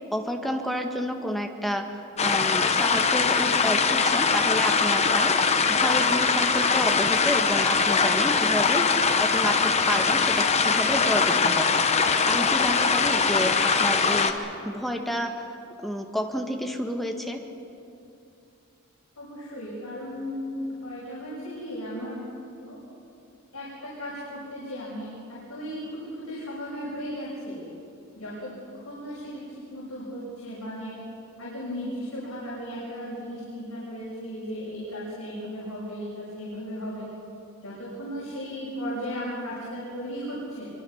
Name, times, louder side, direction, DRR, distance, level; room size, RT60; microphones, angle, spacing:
voice 1, 0.1-8.9 9.2-15.5 15.8-17.4, equal, ahead, 2 dB, 1.6 m, -30 dB
sound 1, 2.2-14.3, left 5 dB, 30° left, 1.1 m, -22 dB
voice 2, 19.2-22.2 22.6-22.8 23.5-27.6 28.1-28.5 28.8-29.4 29.7-31.0 31.4-37.1 37.6-40.7, equal, 75° left, -7 dB, 6.5 m, -36 dB
24.5 x 24.0 x 5.8 m, 2.7 s
head